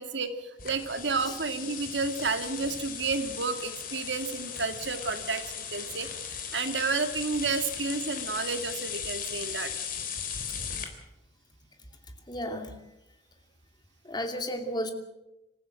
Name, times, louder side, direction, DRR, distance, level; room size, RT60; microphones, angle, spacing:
voice 1, 0.0-9.7, right 4 dB, 75° right, 8 dB, 2.2 m, -31 dB
sound 1, 0.6-10.8, left 7 dB, 50° left, 3.7 m, -37 dB
voice 2, 12.3-12.8 14.0-14.9, equal, 25° left, 5 dB, 2.8 m, -33 dB
26.5 x 15.0 x 7.9 m, 0.92 s
head